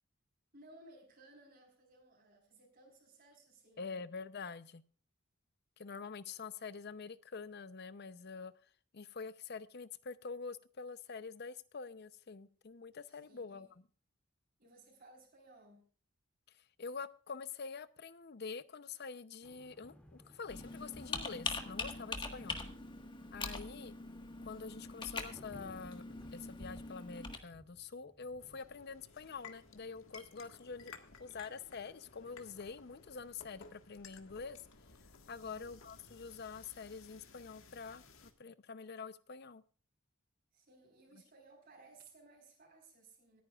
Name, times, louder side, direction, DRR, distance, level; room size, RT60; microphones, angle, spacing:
voice 1, 0.5-4.1 13.2-13.7 14.6-15.8 22.4-22.7 35.4-35.7 40.5-43.4, right 2 dB, 45° right, 1 dB, 4.3 m, -60 dB
voice 2, 3.8-4.8 5.8-8.5 8.9-13.7 16.8-22.6 23.3-23.9 24.4-26.0 26.3-30.9 31.2-34.6 35.3-39.6, left 5 dB, 50° left, 15 dB, 0.6 m, -46 dB
sound 1, 19.4-28.6, left 1 dB, 5° left, 2.2 m, -61 dB
Computer keyboard, 20.5-27.4, left 3 dB, 25° left, 1.5 m, -43 dB
sound 2, 28.4-38.3, left 4 dB, 85° left, 1.6 m, -57 dB
26.0 x 9.4 x 2.4 m, 0.41 s
head